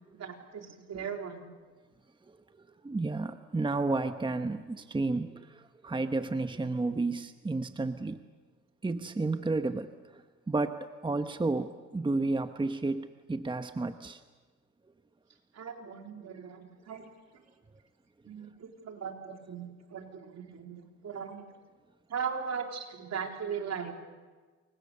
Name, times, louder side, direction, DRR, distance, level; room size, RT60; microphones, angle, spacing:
voice 1, 0.1-1.6 15.5-17.4 18.2-21.5 22.1-23.9, right 6 dB, 60° right, 3 dB, 3.8 m, -39 dB
voice 2, 2.8-8.2 8.8-14.2, right 3 dB, 15° right, 8 dB, 1.0 m, -32 dB
28.5 x 23.5 x 6.8 m, 1.4 s
cardioid pair, 90°, 30 cm